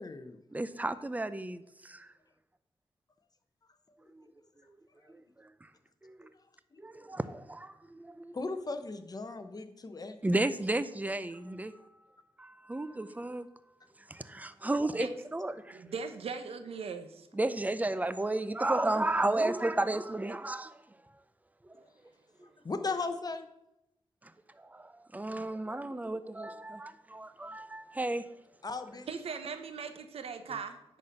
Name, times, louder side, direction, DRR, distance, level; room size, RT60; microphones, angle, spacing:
voice 1, 0.0-0.4 4.2-4.3 6.7-6.8 8.3-10.2 22.6-23.5 28.6-29.1, left 3 dB, 40° left, 1.0 m, -37 dB
voice 2, 0.5-2.1 4.1-4.2 4.7-4.8 5.1-5.2 5.6-5.7 6.0-6.3 6.8-8.4 10.2-11.7 12.4-13.5 14.1-15.8 17.3-20.8 21.6-21.8 24.2-24.3 24.6-28.3, right 2 dB, 15° right, 0.6 m, -33 dB
voice 3, 15.7-17.3 29.1-31.0, right 5 dB, 85° right, 0.9 m, -39 dB
10.5 x 4.3 x 6.6 m
cardioid pair, 70°, 10 cm